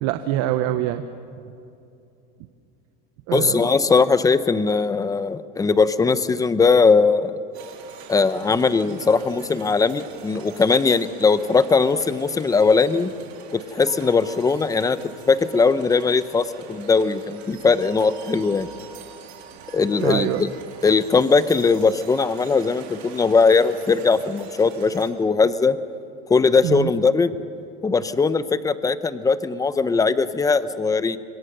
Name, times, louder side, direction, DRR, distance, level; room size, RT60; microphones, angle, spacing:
voice 1, 0.0-1.0 3.3-3.7 20.0-20.4 26.6-26.9, right 13 dB, 55° right, 8 dB, 1.1 m, -24 dB
voice 2, 3.3-7.3 8.1-13.1 13.5-15.0 15.3-18.7 19.7-20.5 20.8-25.8 26.3-27.3 27.8-31.2, left 4 dB, 10° left, 14 dB, 0.8 m, -19 dB
sound 1, 7.5-25.1, right 6 dB, 85° right, 3.8 m, -44 dB
27.0 x 22.5 x 6.8 m, 2.6 s
supercardioid pair, 135°, 31 cm